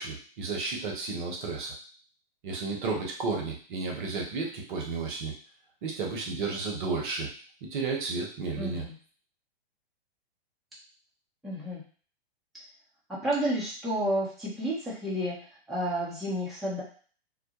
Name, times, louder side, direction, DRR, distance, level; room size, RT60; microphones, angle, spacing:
voice 1, 0.0-1.7 2.4-5.3 5.8-7.3 7.6-8.8, right 4 dB, 50° right, 0 dB, 0.8 m, -32 dB
voice 2, 8.6-8.9 11.4-11.8 13.1-15.4 15.7-16.8, right 1 dB, ahead, -9 dB, 0.6 m, -30 dB
2.2 x 2.0 x 2.8 m, 0.42 s
figure-of-eight pair, 115°, 31 cm